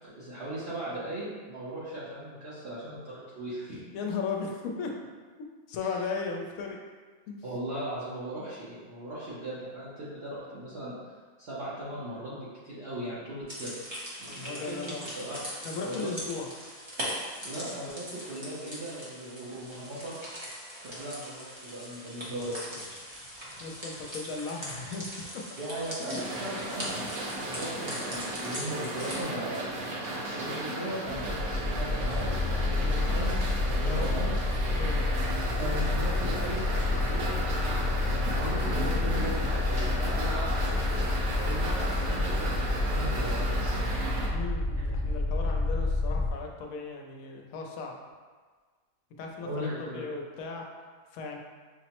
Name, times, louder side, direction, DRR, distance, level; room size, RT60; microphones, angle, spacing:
voice 1, 0.0-3.8 5.8-5.9 7.4-10.9 11.4-13.8 14.2-15.4 15.8-16.1 17.4-20.1 20.8-22.8 25.6-27.0 27.5-29.6 30.0-34.3 35.6-41.1 41.4-43.8 49.4-50.1, right 1 dB, 50° right, -10 dB, 0.9 m, -38 dB
voice 2, 3.9-5.0 5.7-6.8 7.3-7.4 14.2-15.1 15.6-16.5 23.6-25.4 26.0-26.2 26.5-26.6 30.4-30.6 33.8-34.1 34.7-35.1 44.3-48.0 49.2-49.7 49.9-50.7 51.1-51.4, left 4 dB, 75° left, 1 dB, 1.0 m, -36 dB
sound 1, 13.5-29.2, equal, 25° right, 0.6 m, -40 dB
sound 2, 26.1-44.3, right 2 dB, 80° right, 1.1 m, -35 dB
sound 3, 31.1-46.3, left 2 dB, 45° left, 0.4 m, -29 dB
5.5 x 2.0 x 2.9 m, 1.5 s
omnidirectional pair, 1.5 m